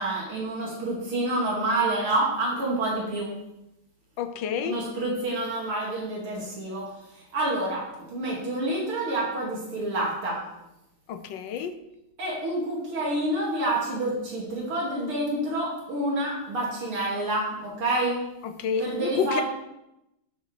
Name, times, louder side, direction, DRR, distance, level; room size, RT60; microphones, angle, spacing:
voice 1, 0.0-3.3 4.6-6.9 7.1-10.4 12.2-18.2 18.8-19.4, right 1 dB, 80° right, -4 dB, 3.2 m, -28 dB
voice 2, 4.2-4.8 11.1-11.8 18.4-19.4, left 7 dB, 70° left, 9 dB, 1.3 m, -29 dB
10.5 x 9.1 x 3.3 m, 0.88 s
omnidirectional pair, 2.4 m